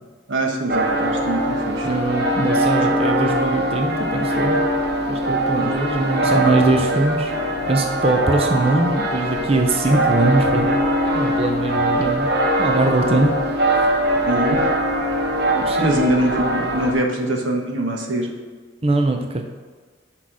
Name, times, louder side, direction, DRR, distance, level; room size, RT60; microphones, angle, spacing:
voice 1, 0.3-1.9 2.8-3.1 5.6-5.7 14.3-14.6 15.8-18.3, right 1 dB, 85° right, 2 dB, 1.2 m, -23 dB
sound 1, 0.7-16.9, right 1 dB, 55° right, 1.0 m, -21 dB
voice 2, 1.8-4.6 5.1-7.3 7.7-10.9 11.1-12.3 12.6-13.3 13.7-13.9 15.5-15.9 18.8-19.4, right 2 dB, 30° right, 4 dB, 0.5 m, -21 dB
6.3 x 5.8 x 4.7 m, 1.5 s
head